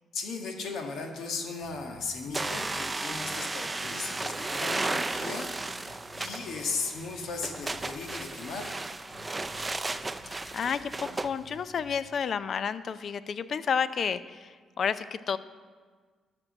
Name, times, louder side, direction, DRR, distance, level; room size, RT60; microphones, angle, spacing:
voice 1, 0.1-8.8, left 4 dB, 75° left, 2 dB, 1.6 m, -37 dB
sound 1, 1.6-2.8 3.1-3.3 3.8-6.6 6.9-8.1 8.4-8.6 9.1-12.0, left 3 dB, 35° left, 2.3 m, -53 dB
sound 2, 2.3-11.3, right 2 dB, 20° right, 0.5 m, -34 dB
voice 2, 10.3-15.4, left 6 dB, 55° left, 14 dB, 0.5 m, -31 dB
12.5 x 6.1 x 6.4 m, 1.5 s
cardioid pair, 90°, 0 cm